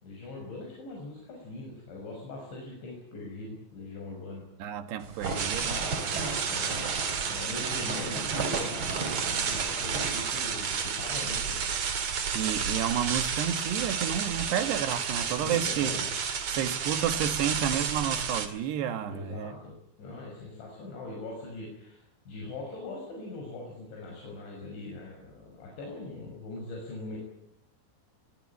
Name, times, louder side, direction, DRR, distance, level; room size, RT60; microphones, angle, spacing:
voice 1, 0.0-4.4 5.6-7.0 7.3-11.6 15.4-16.1 19.1-27.2, left 2 dB, 70° left, 8.6 m, -41 dB
voice 2, 4.6-5.8 12.4-15.9 16.5-19.5, right 9 dB, 70° right, 3.4 m, -31 dB
sound 1, 5.0-10.9, right 3 dB, 30° right, 3.9 m, -36 dB
sound 2, 5.4-18.5, right 6 dB, 45° right, 2.9 m, -31 dB
23.5 x 21.5 x 9.9 m
omnidirectional pair, 5.4 m